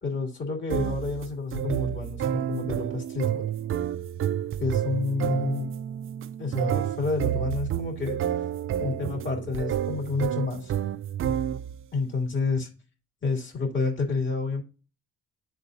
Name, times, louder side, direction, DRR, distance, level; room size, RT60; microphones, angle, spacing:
voice 1, 0.0-3.5 4.6-5.7 6.4-8.4 8.8-10.7 11.9-12.7 13.2-14.6, left 3 dB, 40° left, 1 dB, 2.7 m, -29 dB
sound 1, 0.7-11.9, right 10 dB, 45° right, 0.4 m, -30 dB
11.5 x 3.9 x 2.7 m, 0.33 s
cardioid pair, 90°, 30 cm